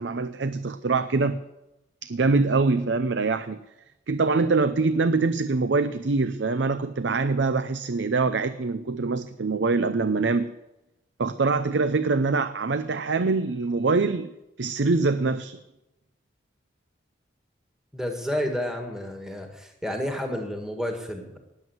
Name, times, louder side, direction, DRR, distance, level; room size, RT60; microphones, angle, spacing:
voice 1, 0.0-1.4 2.0-3.6 4.1-10.5 11.2-14.3 14.6-15.6, right 3 dB, 65° right, 12 dB, 0.6 m, -24 dB
voice 2, 17.9-21.4, equal, 5° right, 2 dB, 1.8 m, -30 dB
19.0 x 7.9 x 8.0 m, 0.94 s
head